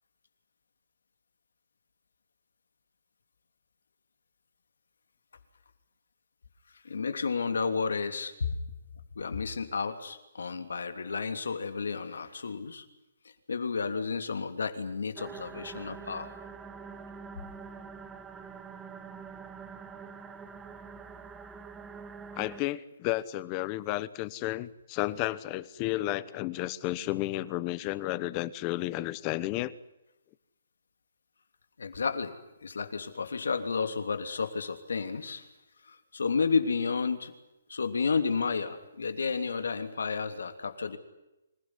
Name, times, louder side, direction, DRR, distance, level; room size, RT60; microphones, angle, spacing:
voice 1, 6.8-8.3 9.1-12.8 13.5-16.3 31.8-32.3 32.6-35.4 35.8-37.3 37.7-41.0, left 5 dB, 85° left, 8 dB, 3.1 m, -31 dB
sound 1, 15.2-22.6, right 5 dB, 10° right, 1.1 m, -45 dB
voice 2, 22.3-29.7, left 16 dB, 20° left, 18 dB, 0.9 m, -32 dB
26.0 x 17.0 x 9.9 m, 0.95 s
hypercardioid pair, 170°, 0 cm